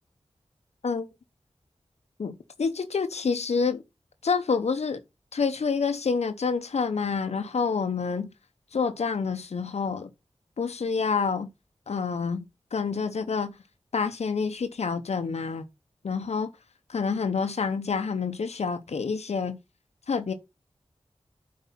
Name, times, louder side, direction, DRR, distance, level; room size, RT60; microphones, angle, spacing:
voice 1, 2.2-3.8 4.2-5.0 5.3-8.3 8.7-10.1 10.6-11.5 11.9-12.4 12.7-13.5 13.9-15.7 16.0-16.5 16.9-19.6 20.1-20.3, left 5 dB, 85° left, 0.8 m, -28 dB
8.4 x 4.8 x 5.7 m
wide cardioid pair, 80°, 11 cm